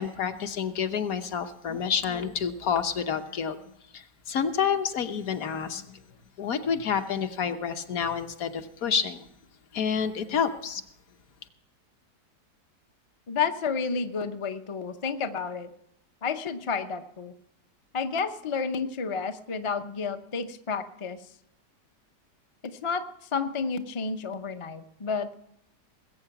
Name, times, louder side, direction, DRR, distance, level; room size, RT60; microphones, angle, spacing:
voice 1, 0.0-3.6 3.9-6.0 6.4-9.3 9.7-10.8, left 7 dB, 60° left, 1.3 m, -29 dB
voice 2, 13.3-15.7 16.2-17.3 17.9-21.2 22.6-23.0 23.3-25.3, left 5 dB, 45° left, 0.4 m, -30 dB
20.0 x 8.3 x 5.9 m
omnidirectional pair, 1.8 m